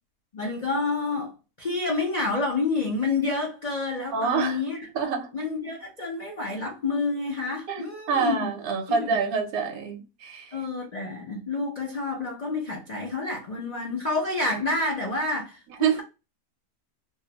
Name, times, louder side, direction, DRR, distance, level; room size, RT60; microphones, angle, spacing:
voice 1, 0.3-1.3 1.6-4.9 5.3-8.5 8.9-9.2 10.5-16.0, left 3 dB, 90° left, 0.3 m, -29 dB
voice 2, 4.1-4.6 4.9-5.3 7.7-10.6 15.8-16.0, right 6 dB, 65° right, 1.0 m, -26 dB
2.8 x 2.1 x 2.8 m
omnidirectional pair, 1.8 m